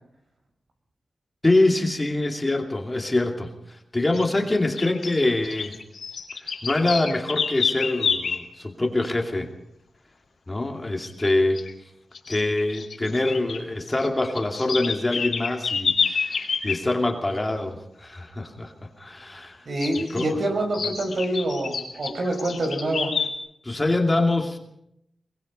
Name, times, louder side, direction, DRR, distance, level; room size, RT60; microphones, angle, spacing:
voice 1, 1.4-5.7 6.6-9.5 10.5-11.6 12.3-19.6 20.1-20.4 23.6-24.6, left 2 dB, 20° left, 2 dB, 2.7 m, -24 dB
sound 1, 4.1-4.3 4.8-8.5 11.0-11.3 11.6-11.7 12.1-13.6 13.9-16.8 19.8-20.3 20.7-23.3, left 5 dB, 80° left, 4.7 m, -28 dB
voice 2, 19.7-23.1, right 1 dB, 60° right, 4 dB, 5.9 m, -26 dB
22.5 x 21.5 x 5.5 m, 0.76 s
wide cardioid pair, 125°, 0 cm